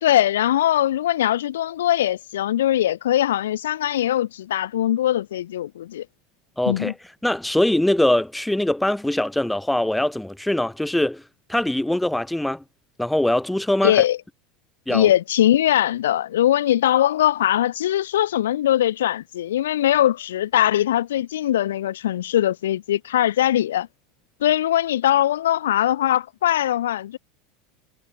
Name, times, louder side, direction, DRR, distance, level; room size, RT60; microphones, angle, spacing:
voice 1, 0.0-6.0 6.7-6.9 13.8-14.2 14.9-23.9 24.4-27.2, left 12 dB, 70° left, 0.6 m, -21 dB
voice 2, 6.6-6.9 7.2-11.2 11.5-12.6 13.0-14.0 14.9-15.1, left 1 dB, 5° left, 2.9 m, -22 dB
figure-of-eight pair, 75°, 0 cm